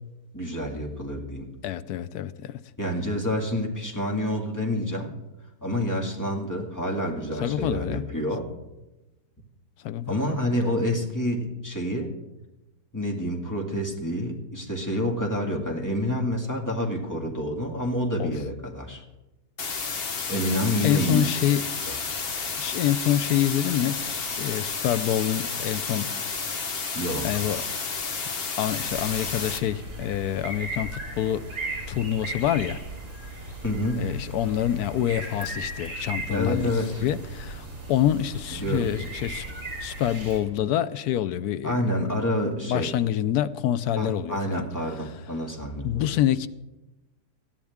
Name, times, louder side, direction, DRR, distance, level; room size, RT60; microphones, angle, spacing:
voice 1, 0.3-1.5 2.8-5.1 5.6-8.5 10.1-12.1 12.9-19.0 20.3-21.2 21.9-22.0 27.0-27.4 33.6-34.2 36.3-37.1 38.5-38.9 41.6-42.9 44.0-46.2, left 1 dB, 10° left, 1.9 m, -28 dB
voice 2, 1.6-2.6 7.4-8.0 9.8-10.4 18.2-18.3 20.8-21.7 22.6-26.1 27.2-27.6 28.2-31.5 31.9-32.8 34.0-39.5 39.8-41.8 42.7-44.6 45.8-46.5, left 11 dB, 75° left, 1.1 m, -26 dB
sound 1, 19.6-29.6, left 5 dB, 40° left, 1.1 m, -31 dB
sound 2, 28.7-40.4, right 2 dB, 50° right, 4.5 m, -37 dB
19.0 x 13.5 x 3.6 m
omnidirectional pair, 1.7 m